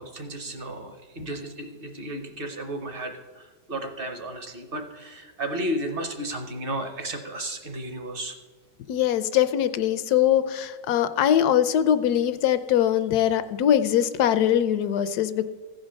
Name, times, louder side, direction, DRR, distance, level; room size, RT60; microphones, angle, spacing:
voice 1, 0.0-8.4, right 1 dB, 45° right, 6 dB, 0.8 m, -33 dB
voice 2, 8.9-15.4, left 10 dB, 70° left, 13 dB, 1.0 m, -22 dB
15.0 x 5.2 x 6.3 m, 1.4 s
omnidirectional pair, 1.9 m